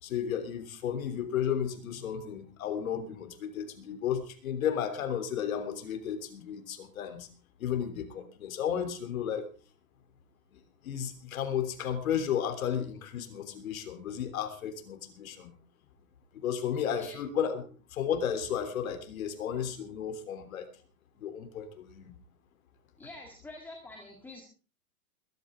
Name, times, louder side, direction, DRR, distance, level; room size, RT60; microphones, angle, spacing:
voice 1, 0.0-7.3 7.6-9.5 10.8-15.5 16.3-20.7 21.2-22.1, left 8 dB, 60° left, 7 dB, 3.4 m, -33 dB
voice 2, 23.0-24.4, left 2 dB, 5° left, 1 dB, 1.7 m, -46 dB
21.0 x 13.0 x 3.6 m, 0.36 s
hypercardioid pair, 160°, 46 cm